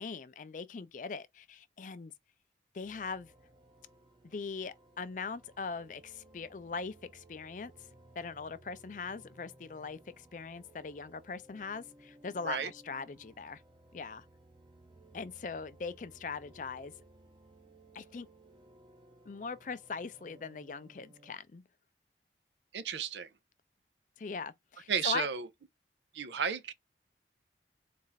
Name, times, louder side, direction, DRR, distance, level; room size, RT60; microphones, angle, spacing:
voice 1, 0.0-2.1 2.7-3.3 4.2-7.7 8.2-13.6 13.9-14.3 15.1-16.9 17.9-18.3 19.3-21.6 24.2-25.3, left 4 dB, 45° left, 0.4 m, -41 dB
sound 1, 2.8-21.3, right 2 dB, 25° right, 0.7 m, -60 dB
voice 2, 22.7-23.3 24.9-25.5 26.1-26.7, right 7 dB, 80° right, 0.5 m, -33 dB
4.1 x 2.5 x 3.9 m
head